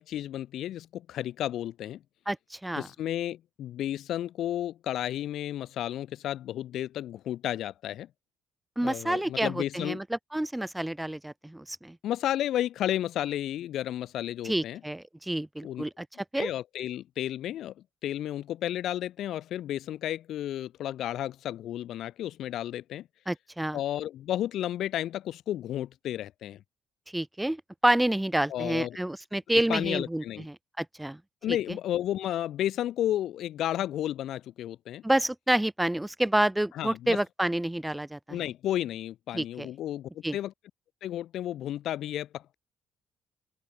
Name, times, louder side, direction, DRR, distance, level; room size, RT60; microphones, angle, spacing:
voice 1, 0.0-2.0 2.8-8.1 8.8-10.0 12.0-14.8 15.6-15.8 16.4-17.7 18.0-23.1 23.7-26.6 28.5-29.0 29.5-30.4 31.4-35.0 36.7-37.2 38.3-40.5 41.0-42.5, left 12 dB, 75° left, 7.4 m, -32 dB
voice 2, 2.3-2.9 8.8-12.0 14.4-16.1 16.3-16.5 23.3-23.8 27.1-31.2 31.7-31.8 35.0-38.4 39.3-39.7 40.2-40.4, right 1 dB, 10° right, 7.8 m, -29 dB
open air
cardioid pair, 90°, 0 cm